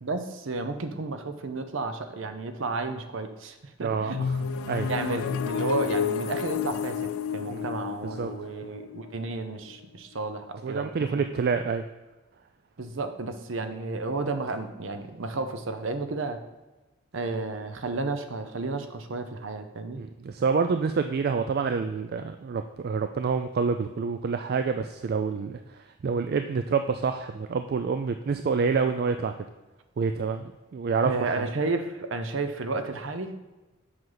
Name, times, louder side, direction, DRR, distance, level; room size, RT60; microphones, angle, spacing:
voice 1, 0.0-4.2 4.9-11.3 12.8-16.4 17.1-20.0 31.0-33.3, right 3 dB, 65° right, 8 dB, 0.7 m, -32 dB
voice 2, 3.8-5.2 7.5-7.7 8.2-8.3 10.6-11.8 20.0-29.3 30.0-31.4, right 5 dB, 45° right, 7 dB, 0.3 m, -28 dB
sound 1, 4.1-9.8, left 6 dB, 80° left, 0.4 m, -31 dB
7.9 x 5.8 x 3.9 m, 1.1 s
head